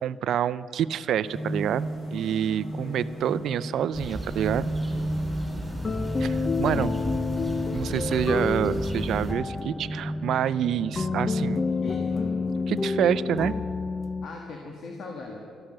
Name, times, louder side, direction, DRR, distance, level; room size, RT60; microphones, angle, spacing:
voice 1, 0.0-4.7 6.2-7.0 7.7-11.6 12.7-13.5, right 10 dB, 75° right, 17 dB, 0.4 m, -27 dB
sound 1, 1.2-11.6, right 1 dB, 50° left, 4.2 m, -34 dB
voice 2, 2.7-3.1 7.9-8.3 11.6-12.3 14.2-15.4, left 3 dB, 65° left, 1 dB, 1.7 m, -40 dB
sound 2, 3.9-9.3, right 1 dB, 5° right, 4.1 m, -36 dB
sound 3, 4.9-14.3, left 4 dB, 35° left, 0.5 m, -29 dB
13.0 x 12.0 x 6.5 m, 2.3 s
cardioid pair, 90°, 0 cm